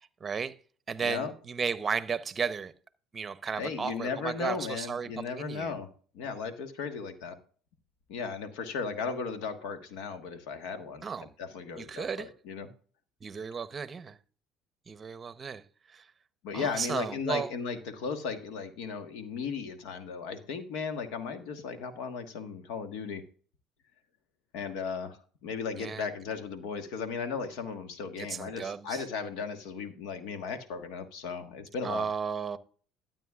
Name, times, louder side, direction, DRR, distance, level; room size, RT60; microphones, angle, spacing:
voice 1, 0.2-0.5 0.9-2.7 3.1-5.8 11.0-11.3 11.8-12.3 13.2-14.2 14.9-15.6 15.9-16.0 16.5-17.5 25.8-26.1 28.2-29.0 31.8-32.6, right 6 dB, 30° right, 0.8 m, -34 dB
voice 2, 1.0-1.3 3.6-7.4 8.1-11.1 11.4-12.7 16.4-23.2 24.5-32.1, left 5 dB, 80° left, 1.4 m, -36 dB
12.5 x 8.9 x 2.4 m
supercardioid pair, 90°, 0 cm